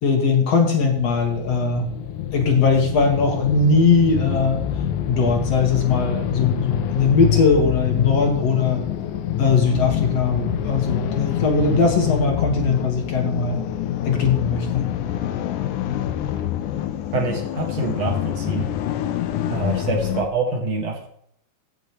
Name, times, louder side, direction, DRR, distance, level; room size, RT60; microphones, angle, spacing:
voice 1, 0.0-1.9 2.3-4.6 5.1-8.8 9.4-13.6 14.1-14.8, left 4 dB, 60° left, 2 dB, 2.5 m, -20 dB
sound 1, 0.8-20.3, left 10 dB, 80° left, 2.2 m, -26 dB
voice 2, 17.1-18.7 19.5-21.1, right 3 dB, 55° right, 2 dB, 2.7 m, -26 dB
16.5 x 6.9 x 3.1 m, 0.67 s
omnidirectional pair, 3.5 m